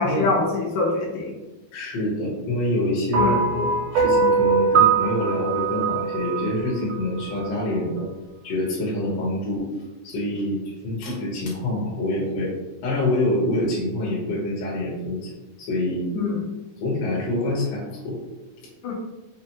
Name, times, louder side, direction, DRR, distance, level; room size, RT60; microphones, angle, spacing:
voice 1, 0.0-1.3 3.2-3.4 16.1-16.4 18.8-18.9, left 3 dB, 85° left, -3 dB, 2.4 m, -24 dB
voice 2, 1.7-8.1 8.4-9.7 10.0-10.6 10.8-12.5 12.8-15.3 15.6-16.1 16.8-18.2, left 1 dB, 65° left, -6 dB, 1.9 m, -26 dB
sound 1, 3.1-7.5, right 5 dB, 80° right, 1.4 m, -21 dB
5.5 x 2.4 x 2.8 m, 1.1 s
omnidirectional pair, 3.4 m